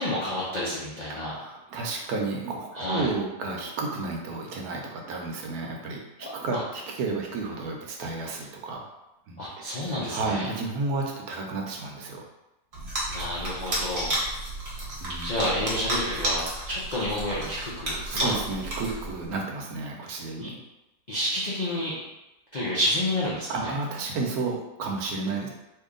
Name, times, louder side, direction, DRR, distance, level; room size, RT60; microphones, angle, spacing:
voice 1, 0.0-1.4 2.7-3.1 6.2-6.6 9.4-10.5 13.1-14.2 15.2-18.3 20.4-20.5 21.1-21.9 22.5-23.7, left 1 dB, 55° left, -8 dB, 0.4 m, -30 dB
voice 2, 1.1-8.8 9.3-9.8 10.1-12.2 15.0-15.4 17.9-20.6 23.5-25.5, right 3 dB, 70° right, 0 dB, 1.1 m, -32 dB
sound 1, 12.7-19.3, right 1 dB, 35° right, 1.0 m, -32 dB
3.0 x 2.7 x 3.7 m, 0.94 s
omnidirectional pair, 1.8 m